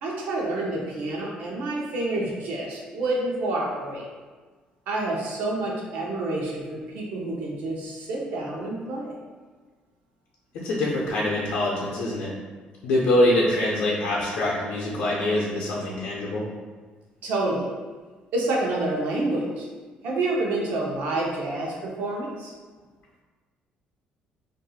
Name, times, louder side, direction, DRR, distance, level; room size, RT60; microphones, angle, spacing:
voice 1, 0.0-4.1 4.9-9.1 17.2-17.7 18.3-19.7 20.0-22.5, right 2 dB, 70° right, -3 dB, 0.7 m, -28 dB
voice 2, 10.6-12.3 12.8-16.5, left 1 dB, 70° left, -6 dB, 0.6 m, -24 dB
4.0 x 2.6 x 2.4 m, 1.4 s
cardioid pair, 175°, 3 cm